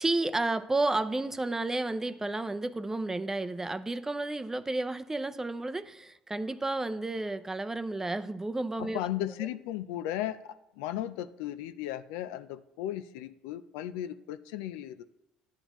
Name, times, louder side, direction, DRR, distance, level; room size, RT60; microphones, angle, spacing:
voice 1, 0.0-9.0, right 2 dB, 15° right, 0.6 m, -31 dB
voice 2, 8.8-15.0, left 12 dB, 85° left, 0.5 m, -36 dB
11.0 x 8.9 x 3.0 m
supercardioid pair, 80°, 3 cm